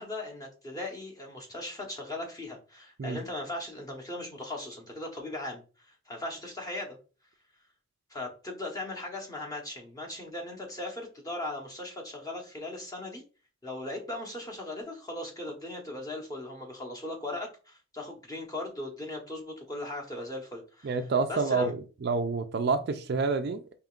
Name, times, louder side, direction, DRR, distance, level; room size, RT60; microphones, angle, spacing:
voice 1, 0.0-7.0 8.1-13.2 13.6-21.0 21.3-21.7, left 1 dB, 15° left, -1 dB, 1.0 m, -38 dB
voice 2, 20.8-23.6, right 4 dB, 50° right, 8 dB, 0.4 m, -28 dB
5.0 x 2.9 x 2.4 m, 0.35 s
head